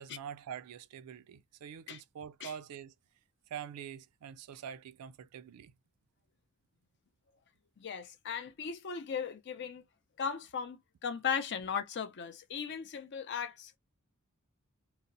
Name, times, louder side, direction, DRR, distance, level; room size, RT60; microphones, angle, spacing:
voice 1, 0.0-2.9 3.5-5.7, right 8 dB, 85° right, 0.4 m, -45 dB
voice 2, 7.8-9.8 10.2-13.7, left 7 dB, 50° left, 0.5 m, -37 dB
2.7 x 2.0 x 2.5 m
head